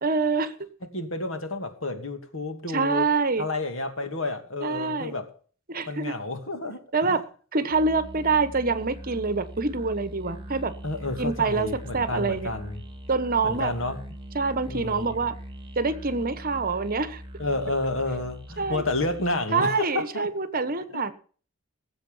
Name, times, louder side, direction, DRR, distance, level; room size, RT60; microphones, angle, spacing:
voice 1, 0.0-0.5 2.7-3.4 4.6-5.1 5.7-6.1 6.9-7.2 7.5-10.7 11.2-12.5 13.1-13.7 14.3-15.3 15.8-17.2 18.6-18.8 19.5-21.1, right 4 dB, 45° right, 13 dB, 1.2 m, -26 dB
voice 2, 0.9-3.1 3.4-5.3 5.9-7.2 10.8-12.8 13.4-14.0 14.7-15.2 17.4-20.3 20.9-21.0, left 2 dB, 70° left, 6 dB, 2.7 m, -30 dB
Musical instrument, 7.7-19.4, equal, 25° right, 2.9 m, -41 dB
19.5 x 8.0 x 5.6 m, 0.42 s
head